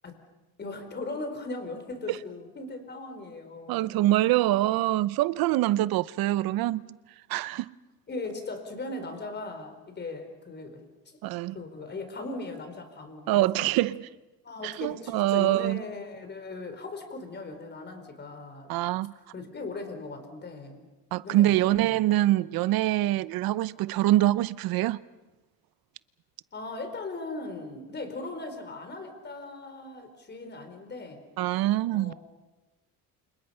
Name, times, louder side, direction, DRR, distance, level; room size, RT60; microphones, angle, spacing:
voice 1, 0.6-4.0 8.1-11.2 11.5-13.7 14.4-18.7 19.3-20.9 21.2-22.0 26.5-31.2 31.9-32.1, left 3 dB, 30° left, 4.4 m, -38 dB
voice 2, 3.7-7.0 7.3-7.8 11.2-11.6 13.3-14.1 14.6-15.8 18.7-19.1 21.1-25.0 31.4-32.1, right 15 dB, 75° right, 0.8 m, -25 dB
29.5 x 27.0 x 5.7 m
cardioid pair, 140°, 36 cm